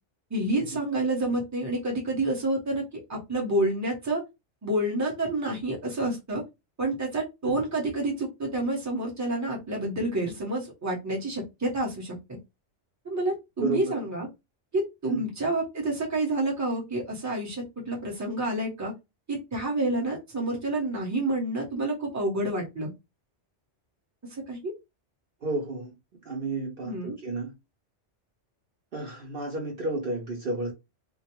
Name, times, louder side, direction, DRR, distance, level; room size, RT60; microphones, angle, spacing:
voice 1, 0.3-4.2 4.6-6.4 6.8-12.1 13.0-14.3 14.7-18.9 19.3-22.9 24.5-24.7 26.8-27.2, right 1 dB, 15° right, 0.9 m, -29 dB
voice 2, 13.6-13.9 15.0-15.2 25.4-25.9 26.2-27.5 28.9-30.7, right 2 dB, 55° right, 0.9 m, -32 dB
2.5 x 2.1 x 2.9 m
omnidirectional pair, 1.2 m